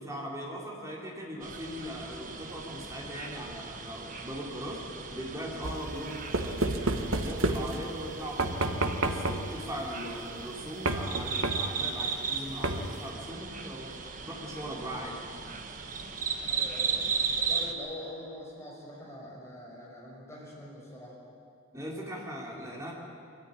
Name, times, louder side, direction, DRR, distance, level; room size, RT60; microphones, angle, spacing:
voice 1, 0.0-4.8 5.1-8.6 9.0-13.9 14.2-15.2 21.7-22.9, equal, 15° right, -3 dB, 3.4 m, -39 dB
sound 1, 1.4-17.7, right 5 dB, 35° right, 1.3 m, -36 dB
sound 2, 5.6-8.0 8.4-9.6 10.9-11.8 12.6-13.1, right 2 dB, 70° right, 1.3 m, -30 dB
voice 2, 16.5-21.2, left 1 dB, 15° left, -4 dB, 5.5 m, -44 dB
22.5 x 14.0 x 9.6 m, 2.5 s
head